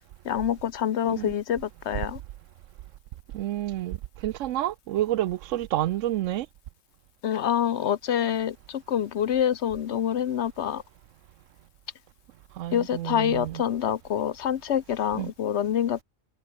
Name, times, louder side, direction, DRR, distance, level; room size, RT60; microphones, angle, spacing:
voice 1, 0.2-2.2 7.2-10.8 12.7-16.0, left 9 dB, 60° left, 0.9 m, -26 dB
voice 2, 3.3-6.5 12.5-13.6 15.1-15.3, right 13 dB, 75° right, 0.9 m, -29 dB
omnidirectional pair, 1.4 m